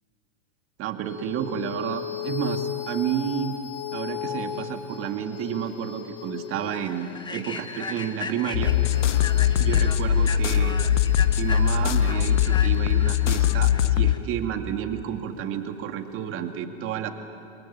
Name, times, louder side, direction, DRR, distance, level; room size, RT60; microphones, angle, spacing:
voice 1, 0.8-3.6 3.9-8.7 9.6-10.8 11.4-17.1, right 9 dB, 35° right, 5 dB, 2.2 m, -30 dB
sound 1, 1.0-15.8, left 8 dB, 30° left, 3.3 m, -38 dB
Human voice / Train, 5.3-5.5 5.9-6.1 6.6-14.2, left 4 dB, 10° left, 1.1 m, -38 dB
sound 2, 8.5-14.2, left 10 dB, 75° left, 1.0 m, -21 dB
29.0 x 22.5 x 8.8 m, 2.5 s
hypercardioid pair, 115°, 36 cm